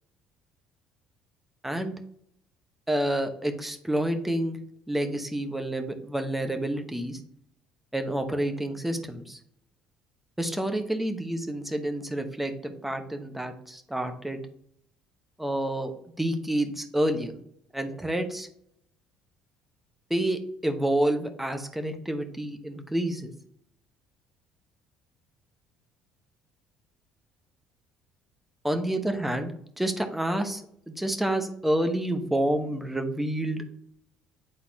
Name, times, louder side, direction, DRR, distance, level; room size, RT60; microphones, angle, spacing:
voice 1, 1.6-2.0 2.9-4.6 4.9-7.2 7.9-9.4 10.4-14.4 15.4-15.9 16.2-17.4 17.7-18.5 20.1-23.3 28.6-29.5 29.8-33.6, right 1 dB, 5° right, 6 dB, 1.1 m, -29 dB
9.8 x 4.1 x 2.9 m, 0.68 s
figure-of-eight pair, 55°, 2 cm